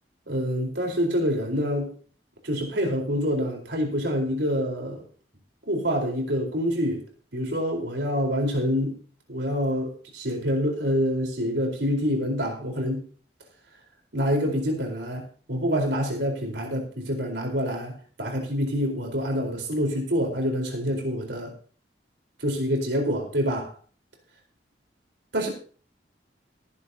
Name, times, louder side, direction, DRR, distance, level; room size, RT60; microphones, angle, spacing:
voice 1, 0.3-1.9 2.4-5.0 5.7-7.0 7.3-9.0 9.3-13.0 14.1-21.5 22.4-23.7 25.3-25.5, equal, 75° right, 2 dB, 4.3 m, -26 dB
19.0 x 10.5 x 2.8 m, 0.40 s
head